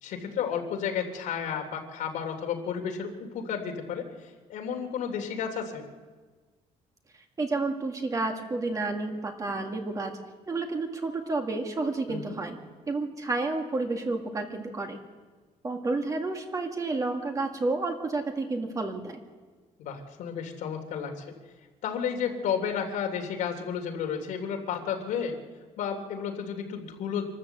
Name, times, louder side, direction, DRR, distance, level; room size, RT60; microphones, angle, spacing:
voice 1, 0.0-5.9 12.1-12.4 19.8-21.2 21.8-25.4 25.8-27.3, left 7 dB, 85° left, 4 dB, 3.1 m, -32 dB
voice 2, 7.4-10.1 10.5-12.6 12.9-15.0 15.6-19.2, right 3 dB, 25° right, 3 dB, 2.0 m, -30 dB
26.0 x 13.0 x 7.8 m, 1.4 s
cardioid pair, 140°, 13 cm